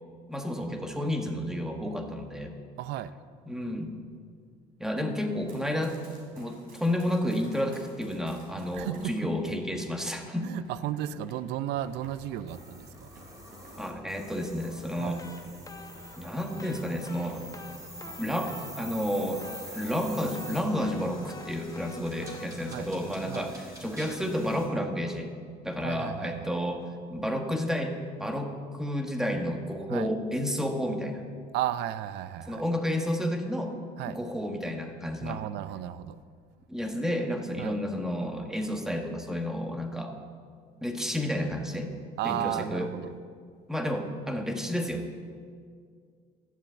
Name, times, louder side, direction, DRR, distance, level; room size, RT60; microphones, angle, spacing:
voice 1, 0.3-2.5 3.5-4.0 4.8-6.0 6.4-10.5 13.7-15.2 16.2-17.5 18.2-25.3 25.6-31.2 32.5-33.7 34.1-35.4 36.7-40.1 40.8-41.9 42.2-42.9 43.7-45.1, equal, 5° right, 4 dB, 1.4 m, -31 dB
voice 2, 2.8-3.1 8.7-9.3 10.4-13.1 15.0-15.2 22.7-22.9 23.3-23.5 25.8-26.5 29.9-30.1 31.5-32.7 34.0-34.2 35.2-36.2 37.6-37.8 42.2-43.2, right 12 dB, 85° right, 15 dB, 0.5 m, -34 dB
Run, 5.3-9.3 9.8-18.9 19.2-20.6, right 1 dB, 60° right, 3.7 m, -55 dB
sound 1, 11.7-24.7, right 1 dB, 20° right, 3.3 m, -46 dB
sound 2, 15.0-24.1, left 3 dB, 20° left, 0.9 m, -49 dB
12.0 x 7.2 x 7.9 m, 2.1 s
cardioid pair, 110°, 17 cm